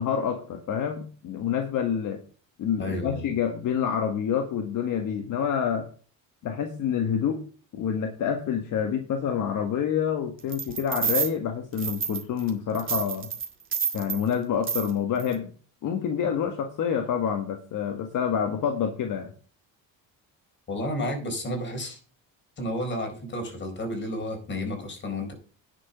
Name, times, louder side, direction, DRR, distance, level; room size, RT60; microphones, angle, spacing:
voice 1, 0.0-2.2 2.6-5.9 6.4-7.4 7.7-13.3 13.9-15.5 15.8-19.3, left 8 dB, 60° left, 4 dB, 1.7 m, -27 dB
voice 2, 2.8-3.3 20.7-22.0 22.6-25.3, left 1 dB, 30° left, 4 dB, 4.3 m, -31 dB
sound 1, 10.5-11.3 11.8-12.5 12.7-14.2 14.6-14.9 15.2-15.3, right 7 dB, 35° right, 2.1 m, -29 dB
10.0 x 6.2 x 5.8 m, 0.39 s
cardioid pair, 135°, 35 cm